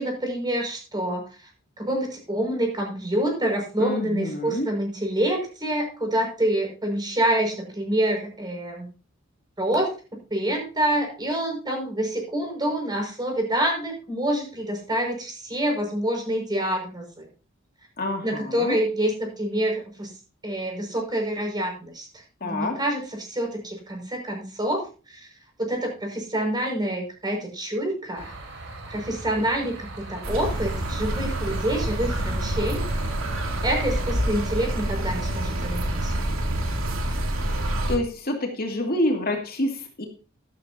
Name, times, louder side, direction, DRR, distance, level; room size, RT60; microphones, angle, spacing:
voice 1, 0.0-1.5 1.8-8.9 9.6-9.9 10.3-17.3 18.2-20.1 20.4-22.1 22.4-25.3 25.6-28.3 28.9-32.8 33.6-36.2, right 1 dB, 20° right, 1 dB, 5.8 m, -27 dB
voice 2, 3.8-4.7 18.0-18.8 22.4-22.8 37.9-40.1, left 1 dB, 50° left, 2 dB, 2.5 m, -27 dB
sound 1, 28.1-34.1, right 2 dB, 65° right, 5.1 m, -38 dB
sound 2, 30.2-38.0, right 1 dB, 80° right, 2.7 m, -27 dB
13.0 x 12.5 x 2.8 m, 0.35 s
head